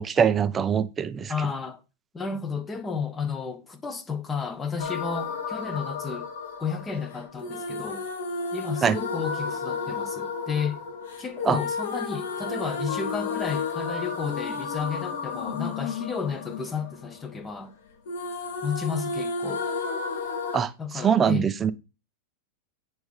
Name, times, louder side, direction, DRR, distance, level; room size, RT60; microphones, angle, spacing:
voice 1, 0.0-1.3 8.8-9.0 11.4-11.6 20.5-21.7, right 7 dB, 20° right, 0.7 m, -23 dB
voice 2, 1.3-1.8 2.1-6.3 6.6-8.1 8.5-10.8 11.2-17.7 18.6-19.6 20.8-21.5, left 5 dB, 15° left, 1.2 m, -32 dB
sound 1, 4.8-17.7 18.1-20.6, left 4 dB, 80° left, 2.7 m, -32 dB
9.4 x 5.2 x 4.9 m
supercardioid pair, 145°, 0 cm